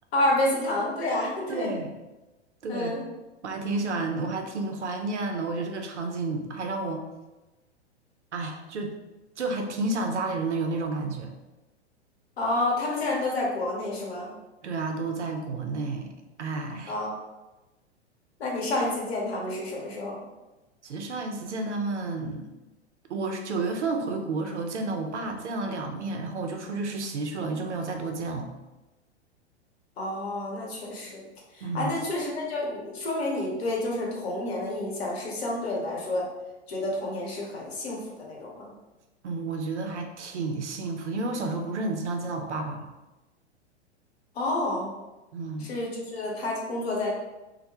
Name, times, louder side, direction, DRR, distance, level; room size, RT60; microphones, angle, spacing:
voice 1, 0.1-1.7 2.7-3.0 12.4-14.3 16.9-17.2 18.4-20.2 30.0-31.2 31.5-36.3 36.7-38.7 44.3-44.9 45.6-47.1, left 1 dB, 60° left, -3 dB, 0.9 m, -29 dB
voice 2, 1.5-1.9 2.6-3.0 3.4-7.1 8.3-8.9 9.4-11.3 14.6-16.1 16.4-17.0 20.8-22.5 23.1-28.5 31.6-32.0 39.2-42.9 45.3-45.7, right 3 dB, 80° right, 4 dB, 0.5 m, -31 dB
2.1 x 2.1 x 2.9 m, 1.1 s
figure-of-eight pair, 100°, 34 cm